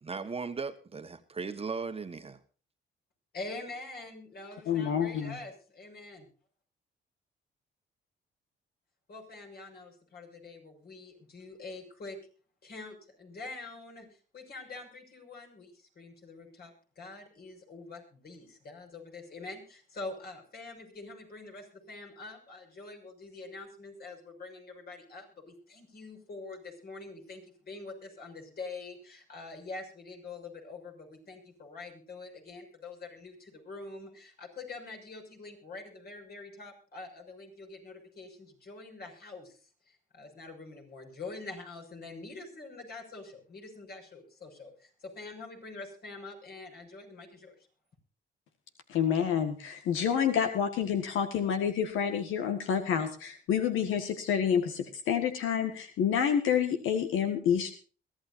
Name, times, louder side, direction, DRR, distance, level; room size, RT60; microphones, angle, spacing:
voice 1, 0.0-2.4, right 4 dB, 30° right, 1.3 m, -37 dB
voice 2, 3.3-6.3 9.1-12.2 12.6-14.1 14.3-39.6 39.9-47.5, left 3 dB, 50° left, 6.3 m, -45 dB
voice 3, 4.7-5.4 48.9-57.7, left 8 dB, 85° left, 1.7 m, -28 dB
22.5 x 14.5 x 2.7 m
cardioid pair, 90°, 20 cm